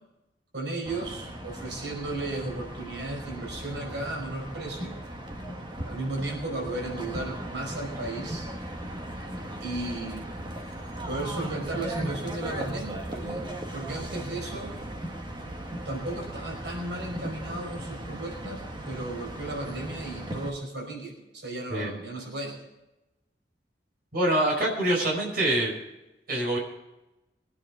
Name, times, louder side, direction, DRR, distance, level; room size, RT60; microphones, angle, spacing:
voice 1, 0.5-4.9 5.8-8.5 9.6-10.3 11.1-13.5 13.7-14.8 15.9-18.6 18.9-22.6, right 2 dB, 85° right, 0 dB, 5.1 m, -35 dB
sound 1, 0.9-20.5, right 1 dB, 25° right, 1.7 m, -37 dB
voice 2, 24.1-25.8 26.3-26.6, right 1 dB, 55° right, -1 dB, 5.2 m, -25 dB
22.0 x 9.9 x 5.0 m, 0.99 s
head